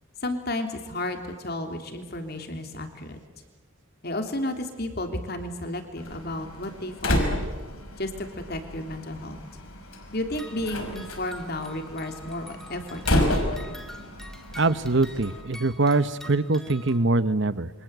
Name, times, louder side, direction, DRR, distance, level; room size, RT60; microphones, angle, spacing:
voice 1, 0.2-3.2 4.0-7.4 8.0-9.4 10.1-13.7, left 1 dB, 45° left, 5 dB, 3.3 m, -33 dB
Slam, 6.0-15.4, left 1 dB, 85° left, 5.3 m, -31 dB
sound 1, 10.3-17.0, left 1 dB, ahead, 2.1 m, -46 dB
voice 2, 14.6-17.7, right 3 dB, 55° right, 14 dB, 1.1 m, -23 dB
28.5 x 25.5 x 8.2 m, 1.3 s
head